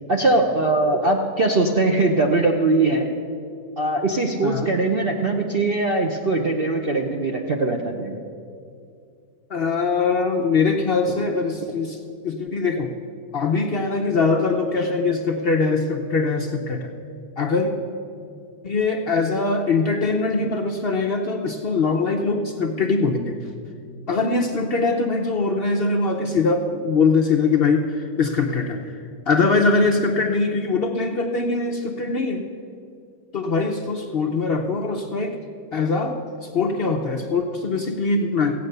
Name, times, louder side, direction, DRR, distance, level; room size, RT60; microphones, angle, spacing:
voice 1, 0.1-3.1 3.8-8.2, right 2 dB, 55° right, 2 dB, 0.6 m, -21 dB
voice 2, 4.4-4.7 9.5-12.0 12.2-12.9 13.3-16.9 17.4-17.7 18.6-23.4 24.1-28.9 29.3-32.4 33.3-35.3 35.7-38.5, left 4 dB, 60° left, 2 dB, 0.6 m, -22 dB
15.5 x 8.5 x 6.7 m, 2.5 s
omnidirectional pair, 2.0 m